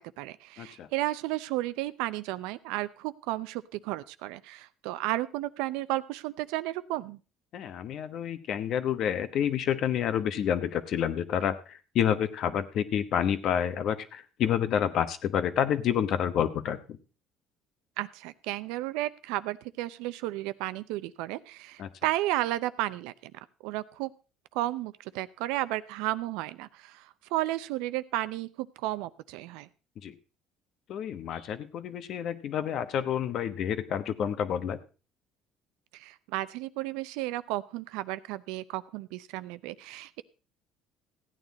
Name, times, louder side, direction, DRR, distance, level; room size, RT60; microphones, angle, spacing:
voice 1, 0.0-7.2 18.0-23.3 23.6-24.1 24.5-29.7 35.9-40.2, right 16 dB, 90° right, 15 dB, 0.6 m, -33 dB
voice 2, 0.6-0.9 7.5-17.0 21.8-21.9 30.0-30.1 30.9-34.8, left 9 dB, 60° left, 12 dB, 1.0 m, -29 dB
15.0 x 9.1 x 4.1 m, 0.33 s
cardioid pair, 115°, 0 cm